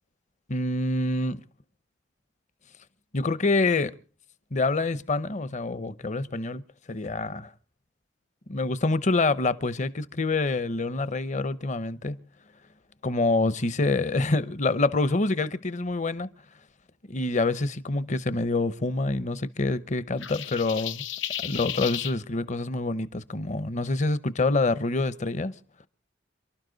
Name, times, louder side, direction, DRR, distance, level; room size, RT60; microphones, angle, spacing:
voice 1, 0.5-1.4 3.1-3.9 4.5-6.6 6.9-7.5 8.5-12.2 13.0-16.3 17.1-21.0 21.4-25.5, left 3 dB, 40° left, 0.8 m, -26 dB
sound 1, 20.2-22.2, left 11 dB, 75° left, 0.8 m, -33 dB
28.0 x 12.5 x 4.0 m
head